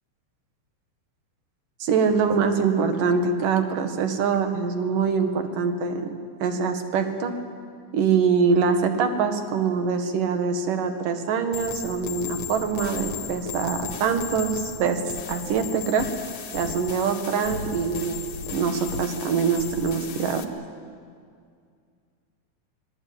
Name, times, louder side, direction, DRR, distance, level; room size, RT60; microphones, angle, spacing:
voice 1, 1.8-6.1 6.4-7.3 7.9-15.0 15.3-16.1 16.5-18.2 18.5-20.4, right 5 dB, 70° right, 6 dB, 3.3 m, -24 dB
sound 1, 11.5-20.4, left 7 dB, 55° left, 2.2 m, -36 dB
25.0 x 20.5 x 8.9 m, 2.2 s
omnidirectional pair, 4.1 m